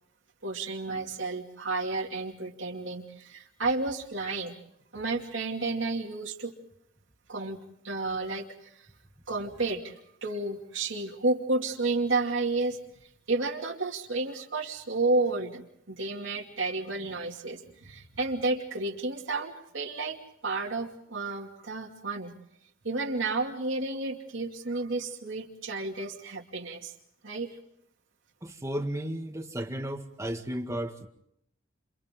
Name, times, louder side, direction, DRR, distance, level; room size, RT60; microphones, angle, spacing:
voice 1, 0.4-4.5 4.9-6.5 7.3-8.9 9.3-9.9 10.2-12.8 13.3-22.3 22.8-26.9 27.2-27.5, right 3 dB, 70° right, 0 dB, 2.6 m, -31 dB
voice 2, 28.4-31.1, right 1 dB, 15° right, 5 dB, 1.8 m, -34 dB
29.5 x 28.0 x 3.8 m, 0.74 s
head